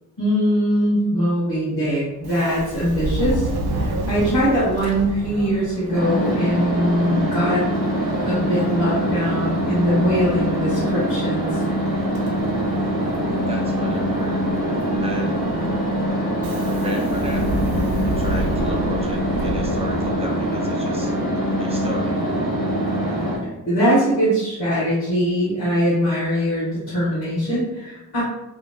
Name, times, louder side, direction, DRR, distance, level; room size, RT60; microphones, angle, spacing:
voice 1, 0.2-3.5 3.7-7.6 8.2-11.6 23.4-28.2, equal, 90° left, -11 dB, 1.3 m, -21 dB
Subway metro underground, 2.2-20.5, right 2 dB, 85° right, 0.5 m, -31 dB
sound 1, 5.9-23.4, equal, 25° left, 1.2 m, -23 dB
voice 2, 13.5-14.4 15.0-15.4 16.6-17.5 18.0-21.1 21.6-22.2, equal, 15° right, 0 dB, 0.5 m, -33 dB
2.9 x 2.9 x 2.3 m, 0.99 s
wide cardioid pair, 120°, 38 cm